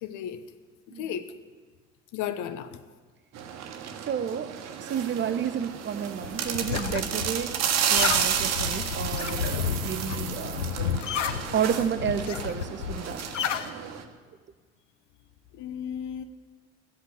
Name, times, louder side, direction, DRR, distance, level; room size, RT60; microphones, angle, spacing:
voice 1, 0.0-0.4 1.0-1.3 2.1-2.8 15.6-16.2, left 9 dB, 55° left, 11 dB, 1.0 m, -34 dB
sound 1, 3.3-14.0, right 8 dB, 45° right, 1.3 m, -31 dB
voice 2, 4.1-4.5 4.8-7.6 7.9-10.6 11.5-13.2, right 8 dB, 30° right, 13 dB, 0.7 m, -31 dB
sound 2, 6.2-13.7, left 8 dB, 80° left, 0.6 m, -32 dB
13.0 x 8.2 x 8.8 m, 1.5 s
figure-of-eight pair, 55°, 36 cm